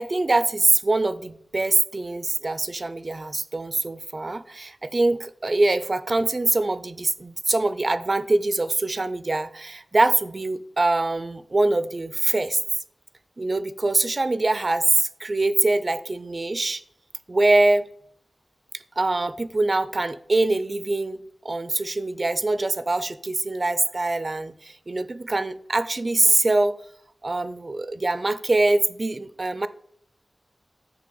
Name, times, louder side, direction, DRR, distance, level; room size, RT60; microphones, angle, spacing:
voice 1, 0.0-12.6 13.4-16.8 17.3-17.9 19.0-26.8 27.2-29.7, right 2 dB, 40° right, 0.4 m, -23 dB
9.5 x 3.3 x 6.8 m
wide cardioid pair, 105°, 0 cm